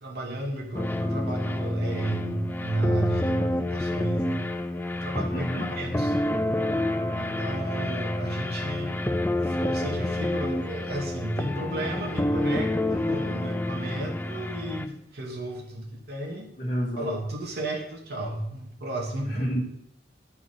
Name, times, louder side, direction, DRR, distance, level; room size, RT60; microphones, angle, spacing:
voice 1, 0.0-4.5 4.9-6.1 7.1-9.0 9.4-16.5 17.0-19.4, right 2 dB, 60° right, 0 dB, 1.3 m, -33 dB
sound 1, 0.7-14.9, left 1 dB, 10° left, 0.4 m, -28 dB
voice 2, 5.3-5.7 16.6-17.2 19.3-19.6, equal, 40° left, -4 dB, 1.3 m, -29 dB
10.5 x 4.1 x 6.3 m, 0.74 s
head